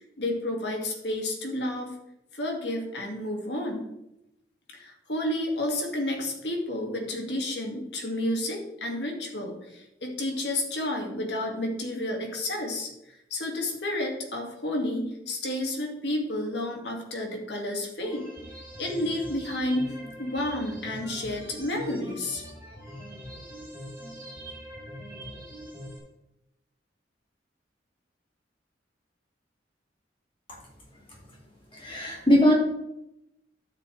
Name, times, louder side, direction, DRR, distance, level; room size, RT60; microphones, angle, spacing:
voice 1, 0.2-1.9 2.3-3.8 4.7-12.9 13.3-18.3 18.8-22.4, left 1 dB, 70° left, 1 dB, 2.1 m, -31 dB
sound 1, 18.0-26.0, equal, 15° right, 3.4 m, -42 dB
voice 2, 31.7-32.5, equal, 30° left, -3 dB, 2.3 m, -21 dB
12.0 x 6.8 x 3.3 m, 0.85 s
head